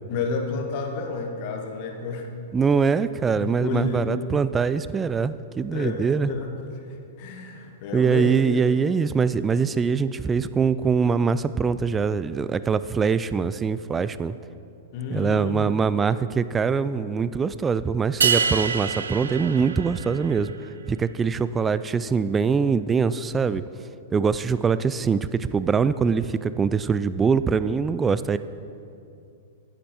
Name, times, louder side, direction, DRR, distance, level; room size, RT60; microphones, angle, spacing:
voice 1, 0.1-2.3 3.4-4.2 5.7-8.3 14.9-15.7, left 4 dB, 50° left, 3 dB, 1.2 m, -31 dB
voice 2, 2.5-6.3 7.9-14.4 15.1-20.5 20.9-23.6 24.1-28.4, right 5 dB, 15° right, 15 dB, 0.3 m, -23 dB
sound 1, 18.2-20.5, right 6 dB, 80° right, 0.5 m, -25 dB
10.5 x 8.4 x 4.4 m, 2.6 s
hypercardioid pair, 110°, 0 cm